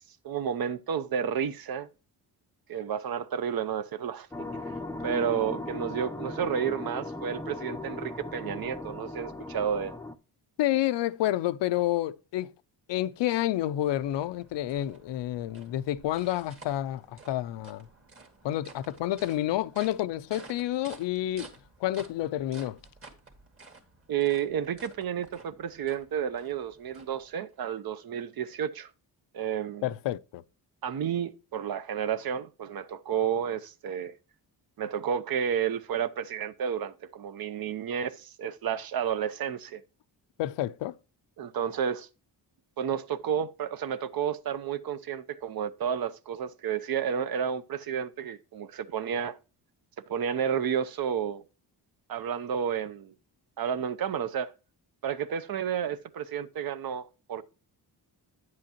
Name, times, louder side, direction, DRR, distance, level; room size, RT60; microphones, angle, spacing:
voice 1, 0.2-1.9 2.7-4.3 5.0-9.9 24.1-28.9 29.3-29.9 30.8-34.1 34.8-39.8 41.4-42.1 42.8-49.4 50.1-51.4 52.1-53.1 53.6-54.5 55.0-57.4, right 8 dB, 60° right, 0.7 m, -31 dB
sound 1, 4.3-10.1, left 2 dB, 5° left, 0.5 m, -37 dB
voice 2, 10.6-12.5 12.9-17.9 18.4-21.5 21.8-22.8 29.8-30.4 40.4-40.9, left 14 dB, 85° left, 0.5 m, -29 dB
sound 2, 13.1-27.6, right 3 dB, 30° right, 1.9 m, -52 dB
9.5 x 7.7 x 2.9 m
cardioid pair, 110°, 41 cm